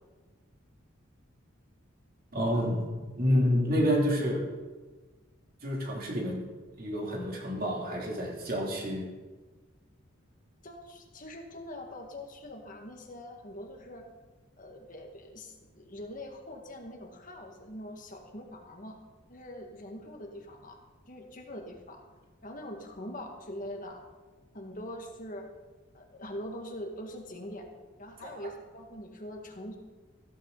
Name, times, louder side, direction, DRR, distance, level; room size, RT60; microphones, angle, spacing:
voice 1, 2.3-4.5 5.6-6.5 6.8-9.1, equal, 45° right, -1 dB, 3.2 m, -28 dB
voice 2, 10.6-14.0 14.6-19.0 19.3-20.8 21.1-22.0 22.4-24.0 24.5-25.5 25.9-27.7 28.0-29.8, left 1 dB, 40° left, 2 dB, 2.0 m, -43 dB
15.5 x 14.0 x 4.1 m, 1.3 s
head